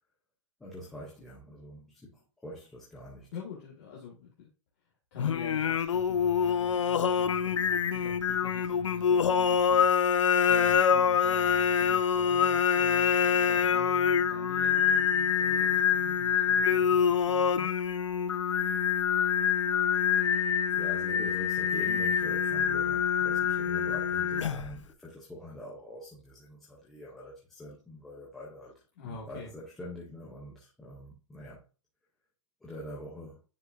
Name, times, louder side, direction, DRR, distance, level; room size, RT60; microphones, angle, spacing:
voice 1, 0.6-3.3 20.7-31.6 32.6-33.4, left 1 dB, ahead, 0.4 m, -45 dB
voice 2, 3.3-4.5 5.1-17.7 29.0-29.5, left 5 dB, 25° left, 1.5 m, -46 dB
Singing, 5.2-24.8, left 7 dB, 70° left, 0.7 m, -26 dB
9.7 x 4.9 x 2.4 m
hypercardioid pair, 180°, 16 cm